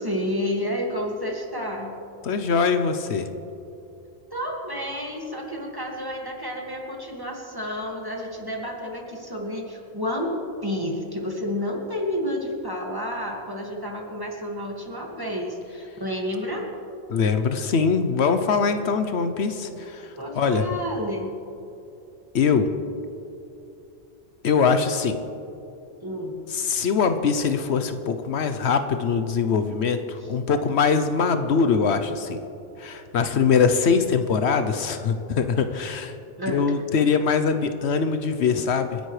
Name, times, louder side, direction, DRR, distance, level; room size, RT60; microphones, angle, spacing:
voice 1, 0.0-1.9 4.3-16.7 20.2-21.3 26.0-26.4 30.2-30.3 36.4-36.6, equal, 20° right, -1 dB, 2.0 m, -30 dB
voice 2, 2.2-3.3 17.1-20.7 22.3-22.7 24.4-25.2 26.5-32.4 32.8-36.2 36.5-39.0, left 5 dB, 75° left, 9 dB, 1.0 m, -22 dB
27.0 x 10.5 x 3.3 m, 2.8 s
omnidirectional pair, 1.1 m